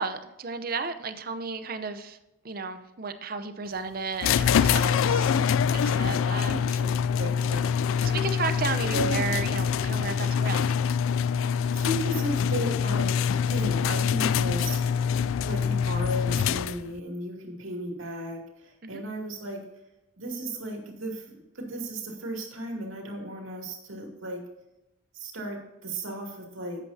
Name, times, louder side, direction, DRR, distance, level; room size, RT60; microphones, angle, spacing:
voice 1, 0.0-2.2 2.4-5.4 5.7-6.6 7.5-7.7 8.0-10.7 18.8-19.0, right 4 dB, 45° right, 10 dB, 0.7 m, -33 dB
sound 1, 4.2-17.0, left 7 dB, 70° left, 0.3 m, -25 dB
voice 2, 6.5-6.9 7.2-8.2 8.9-9.3 11.7-13.2 13.4-14.8 15.4-19.6 20.2-21.2 21.5-24.4 25.1-26.8, right 1 dB, 70° right, 1 dB, 2.6 m, -35 dB
11.5 x 8.3 x 2.7 m, 0.94 s
head